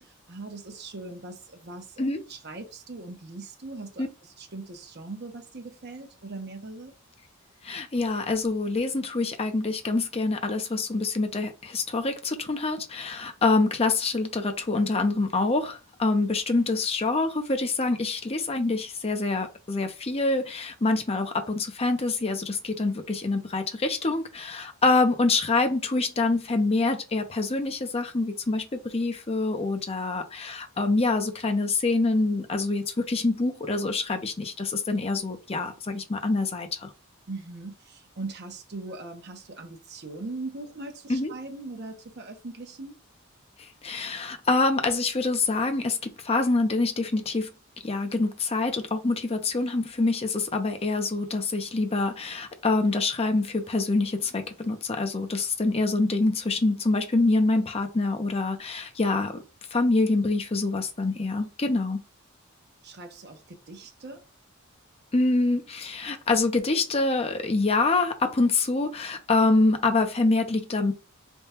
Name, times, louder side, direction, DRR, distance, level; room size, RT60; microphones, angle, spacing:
voice 1, 0.0-6.9 37.3-43.0 62.8-64.2, right 3 dB, 50° right, 0.8 m, -40 dB
voice 2, 7.6-36.9 41.1-41.3 43.8-47.5 47.8-59.4 59.7-62.0 65.1-70.9, left 3 dB, 30° left, 0.6 m, -26 dB
3.5 x 2.3 x 4.2 m
head